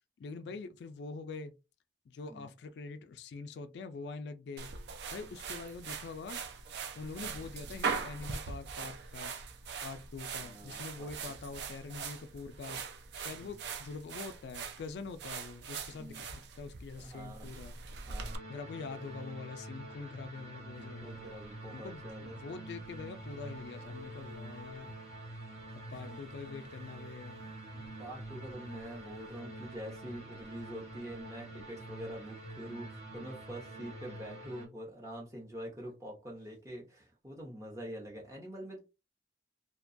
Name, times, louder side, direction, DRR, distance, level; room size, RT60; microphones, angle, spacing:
voice 1, 0.2-1.5 2.1-4.7 5.1-6.4 7.0-9.4 9.8-12.8 13.2-17.8 18.5-21.2 21.6-24.9 25.9-27.4, left 4 dB, 75° left, 0.3 m, -44 dB
sound 1, 4.6-18.4, right 5 dB, 75° right, 0.4 m, -41 dB
voice 2, 10.4-11.1 13.3-13.5 16.0-16.2 17.0-17.5 18.1-18.4 20.0-20.1 20.7-22.4 25.9-26.2 27.6-38.8, equal, 15° right, 0.7 m, -45 dB
sound 2, 18.2-34.7, right 1 dB, 35° right, 1.2 m, -46 dB
2.7 x 2.2 x 2.5 m
head